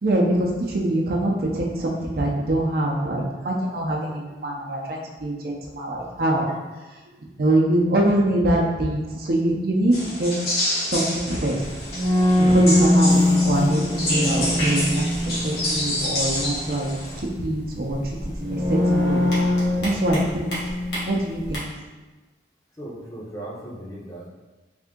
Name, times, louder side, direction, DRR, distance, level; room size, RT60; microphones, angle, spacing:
voice 1, 0.0-6.5 7.4-10.3 10.9-11.6 12.4-16.9 17.2-18.0 18.4-19.2 19.8-20.5 21.1-21.7, right 1 dB, 55° right, -1 dB, 0.6 m, -24 dB
sound 1, 9.9-17.2, left 1 dB, 60° left, 1.4 m, -28 dB
sound 2, 11.6-21.6, left 1 dB, 75° left, 1.3 m, -23 dB
voice 2, 12.6-13.0 22.8-24.3, right 1 dB, 20° left, -4 dB, 0.7 m, -38 dB
3.5 x 2.7 x 3.6 m, 1.2 s
head